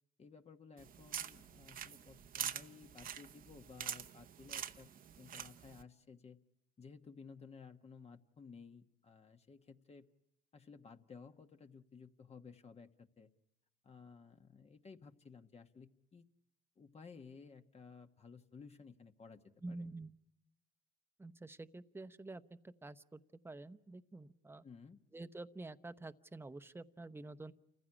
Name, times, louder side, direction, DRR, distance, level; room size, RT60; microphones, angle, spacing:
voice 1, 0.2-4.9 5.2-6.4 6.8-10.1 10.5-13.3 13.8-16.2 16.8-19.9 24.6-25.0, left 5 dB, 40° left, 6 dB, 1.3 m, -56 dB
sound 1, 0.8-5.8, right 9 dB, 55° right, 0.9 m, -45 dB
voice 2, 19.6-20.1 21.2-24.6 25.1-27.5, right 2 dB, 15° right, 12 dB, 0.9 m, -49 dB
28.5 x 15.5 x 9.9 m, 0.85 s
cardioid pair, 85°, 17 cm